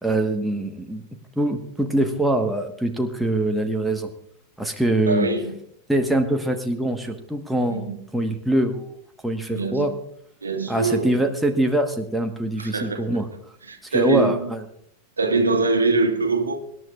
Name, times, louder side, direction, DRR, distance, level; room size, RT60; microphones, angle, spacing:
voice 1, 0.0-1.0 1.4-4.1 4.6-5.3 5.9-8.8 9.2-9.9 10.7-13.3 13.8-14.6, right 1 dB, 5° right, 4 dB, 1.3 m, -23 dB
voice 2, 5.0-5.5 7.7-8.0 9.5-9.9 10.4-11.2 12.6-13.2 13.7-14.5 15.2-16.6, right 3 dB, 75° right, 5 dB, 1.6 m, -23 dB
24.5 x 11.0 x 2.4 m, 0.69 s
figure-of-eight pair, 90°, 0 cm